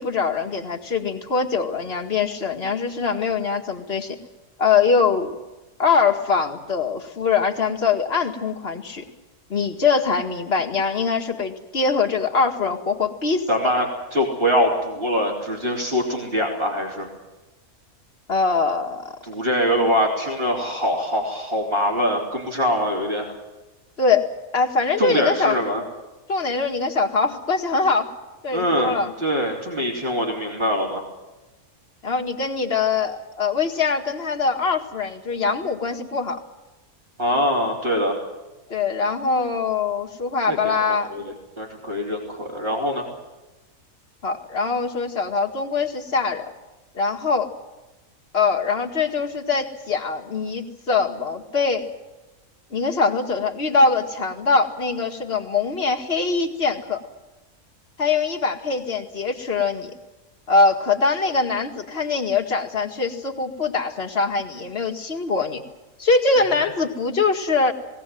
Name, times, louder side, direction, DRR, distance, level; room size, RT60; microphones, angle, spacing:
voice 1, 0.0-4.2 4.6-5.3 5.8-9.0 9.5-13.7 18.3-19.1 24.0-25.6 26.3-28.1 28.4-29.1 32.0-36.4 38.7-41.1 44.2-46.5 46.9-47.5 48.3-51.9 52.7-57.0 58.0-59.9 60.5-65.6 66.0-67.7, left 4 dB, 45° left, 2 dB, 2.2 m, -22 dB
voice 2, 13.5-17.1 19.3-23.3 25.0-25.8 28.5-31.0 37.2-38.1 40.5-40.8 41.1-43.0 66.6-66.7, equal, 40° right, -4 dB, 3.9 m, -23 dB
20.5 x 18.0 x 9.3 m, 1.1 s
omnidirectional pair, 1.5 m